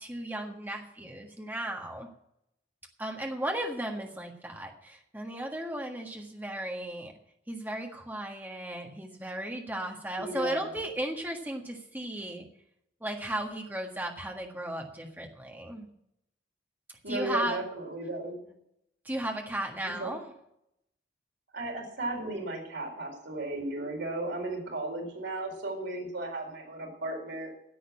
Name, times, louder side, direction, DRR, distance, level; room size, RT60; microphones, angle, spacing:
voice 1, 0.0-2.1 3.0-7.1 7.5-12.5 13.0-15.9 17.1-17.6 19.0-20.3, right 1 dB, 10° right, 2 dB, 1.6 m, -35 dB
voice 2, 10.2-10.8 17.0-18.5 19.8-20.2 21.5-27.5, right 2 dB, 80° right, 0 dB, 4.4 m, -35 dB
10.5 x 7.9 x 8.7 m, 0.79 s
head